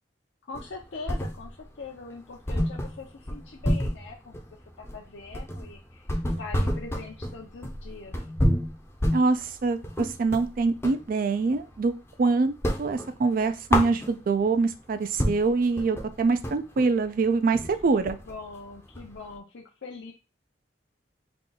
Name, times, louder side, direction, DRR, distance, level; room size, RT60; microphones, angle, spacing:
voice 1, 0.4-8.3 17.9-20.1, left 4 dB, 75° left, -2 dB, 0.6 m, -42 dB
sound 1, 0.5-1.7 2.0-2.1 2.5-11.1 11.4-12.2 12.5-14.5 14.9-15.0 15.2-19.3, equal, 15° left, 0.5 m, -29 dB
voice 2, 9.1-11.9 12.2-12.5 12.8-18.2, right 4 dB, 50° right, 9 dB, 0.4 m, -24 dB
3.7 x 2.3 x 3.8 m, 0.30 s
head